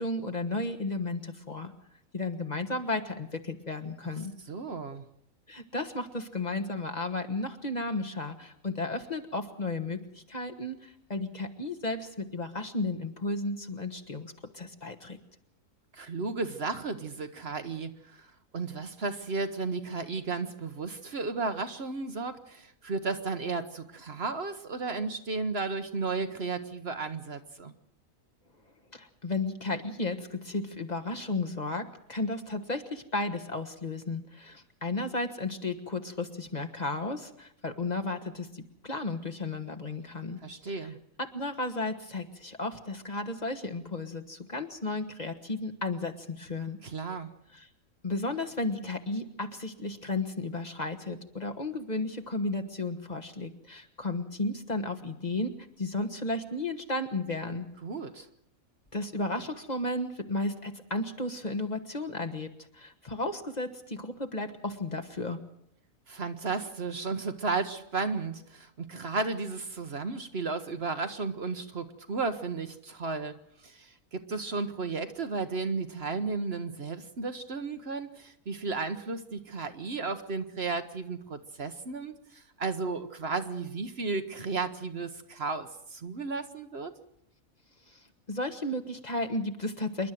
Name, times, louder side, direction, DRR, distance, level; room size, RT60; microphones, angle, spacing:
voice 1, 0.0-1.7 2.1-4.3 5.5-15.2 28.9-40.4 40.7-40.9 41.2-46.8 47.5-47.7 48.0-57.7 58.9-65.4 87.9-90.1, left 2 dB, 30° left, 4 dB, 1.5 m, -34 dB
voice 2, 4.5-5.0 15.9-18.3 18.5-27.7 40.4-41.0 46.8-47.3 57.8-58.3 66.1-73.3 73.6-86.9, right 4 dB, 50° right, 9 dB, 1.3 m, -34 dB
27.5 x 11.5 x 9.2 m, 0.73 s
omnidirectional pair, 1.4 m